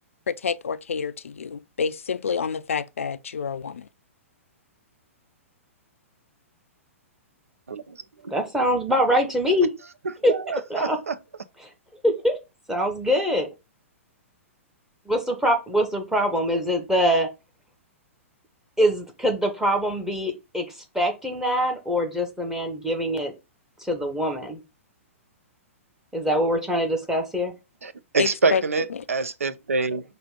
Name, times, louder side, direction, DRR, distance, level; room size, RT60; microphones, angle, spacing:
voice 1, 0.3-3.9 28.2-28.6 28.9-29.0, left 6 dB, 70° left, 0.4 m, -28 dB
voice 2, 8.3-9.7 10.2-10.3 10.7-11.0 12.0-12.4 12.7-13.5 15.1-17.3 18.8-20.6 20.9-23.3 23.8-24.6 26.1-27.5, equal, 5° right, 0.9 m, -23 dB
voice 3, 10.0-11.2 27.8-30.0, right 4 dB, 75° right, 0.5 m, -26 dB
5.0 x 2.7 x 3.6 m
figure-of-eight pair, 110°, 8 cm